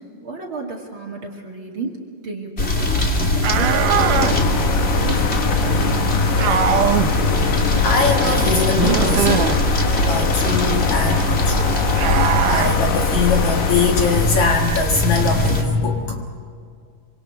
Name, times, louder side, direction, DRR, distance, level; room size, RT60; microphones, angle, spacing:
voice 1, 0.0-3.8 4.1-6.6, right 3 dB, 40° right, 2 dB, 2.6 m, -34 dB
sound 1, 2.6-15.6, left 2 dB, 20° left, 2.2 m, -20 dB
sound 2, 3.4-15.0, left 5 dB, 90° left, 3.3 m, -26 dB
sound 3, 3.4-4.4 6.4-7.1 8.8-9.6 11.9-12.7, right 10 dB, 70° right, 2.2 m, -20 dB
voice 2, 7.8-9.5 10.0-11.8 12.4-16.2, left 3 dB, 60° left, 2 dB, 2.5 m, -21 dB
26.0 x 25.5 x 4.7 m, 2.2 s
omnidirectional pair, 4.5 m